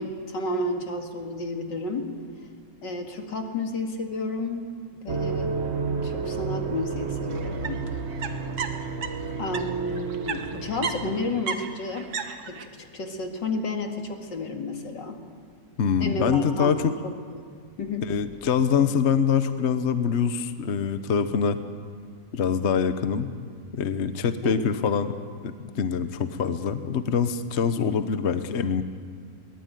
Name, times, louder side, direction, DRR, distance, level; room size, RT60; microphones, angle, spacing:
voice 1, 0.0-2.1 2.8-4.6 5.0-5.6 6.0-7.9 8.3-8.5 9.4-12.1 12.5-15.2 16.0-16.7 17.0-17.1 17.8-18.0 24.4-24.6, left 2 dB, 75° left, 3 dB, 2.9 m, -31 dB
sound 1, 5.1-11.4, right 4 dB, 40° right, 1.5 m, -31 dB
sound 2, 7.3-9.6 9.9-12.6, right 6 dB, 60° right, 1.7 m, -34 dB
voice 2, 15.8-16.9 18.0-21.6 22.3-23.3 23.7-25.1 25.4-28.8, left 6 dB, 45° left, 10 dB, 1.1 m, -24 dB
22.5 x 19.0 x 9.2 m, 2.1 s
omnidirectional pair, 1.9 m